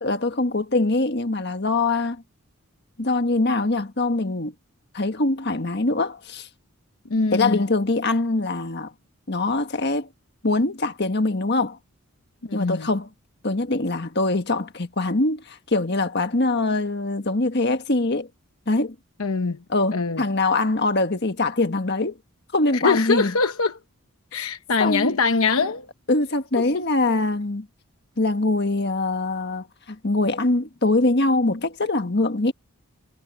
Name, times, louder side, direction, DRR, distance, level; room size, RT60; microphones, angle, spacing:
voice 1, 0.0-2.2 3.0-4.5 4.9-6.5 7.3-8.9 9.3-10.1 10.4-11.8 12.5-13.1 13.4-18.3 18.7-18.9 19.7-22.2 22.5-23.3 24.3-24.5 24.8-25.1 26.1-27.7 28.2-32.5, left 2 dB, 50° left, 1.6 m, -23 dB
voice 2, 7.1-7.6 12.4-12.9 19.2-19.6 19.9-20.2 22.7-23.8 24.3-25.9 26.6-26.9, left 4 dB, 70° left, 1.0 m, -23 dB
head